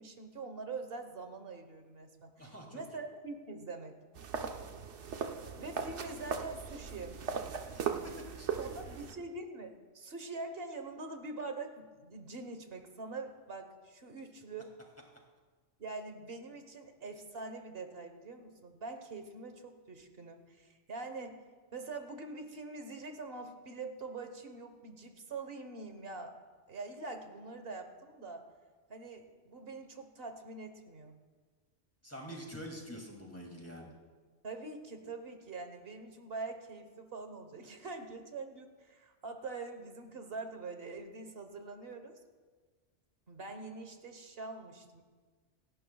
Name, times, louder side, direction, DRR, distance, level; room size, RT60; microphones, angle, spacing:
voice 1, 0.0-4.0 5.6-7.3 8.6-14.8 15.8-21.4 21.7-26.4 26.7-28.5 28.9-31.1 34.4-42.1 43.3-45.0, right 3 dB, 55° right, 6 dB, 1.4 m, -44 dB
voice 2, 2.4-2.8 7.7-8.8 32.0-33.9, equal, 10° left, -1 dB, 2.5 m, -47 dB
sound 1, 4.2-9.1, right 6 dB, 70° right, 1.1 m, -38 dB
26.5 x 11.5 x 2.3 m, 1.4 s
omnidirectional pair, 1.2 m